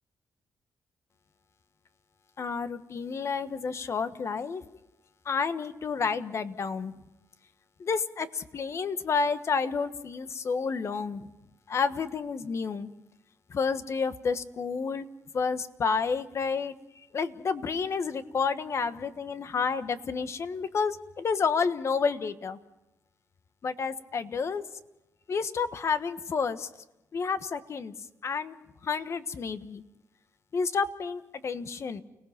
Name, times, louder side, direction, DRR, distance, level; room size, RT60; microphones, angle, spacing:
voice 1, 2.4-4.6 5.2-6.9 7.8-11.3 11.7-12.9 13.5-15.0 15.3-16.7 17.1-22.6 23.6-24.6 25.3-26.7 27.1-27.9 28.2-28.5 28.8-29.8 30.5-32.0, left 5 dB, 50° left, 11 dB, 1.4 m, -30 dB
29.5 x 19.0 x 5.9 m, 0.92 s
cardioid pair, 95°, 6 cm